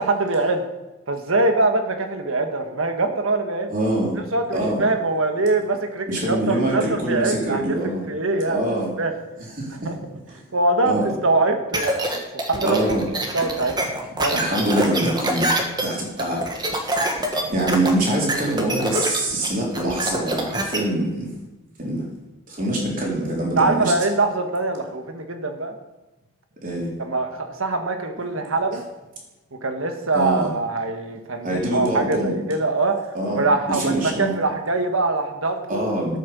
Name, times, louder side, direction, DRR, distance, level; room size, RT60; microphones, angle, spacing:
voice 1, 0.1-0.6 1.1-3.7 4.3-8.6 9.0-9.1 9.8-10.0 10.5-12.9 13.3-13.8 14.2-14.4 23.6-25.8 27.0-28.8 29.6-35.8, right 2 dB, 70° right, 6 dB, 1.6 m, -23 dB
voice 2, 3.7-4.1 4.5-4.8 6.1-8.1 8.5-8.9 9.6-9.9 10.8-11.0 12.6-13.0 14.3-15.4 15.8-21.3 21.8-22.1 22.5-23.9 26.6-26.9 30.1-30.5 31.4-32.4 33.1-34.3 35.7-36.2, right 1 dB, 40° right, -3 dB, 3.8 m, -24 dB
sound 1, 11.7-20.8, right 1 dB, 20° right, 1.5 m, -25 dB
11.0 x 8.7 x 7.0 m, 1.1 s
head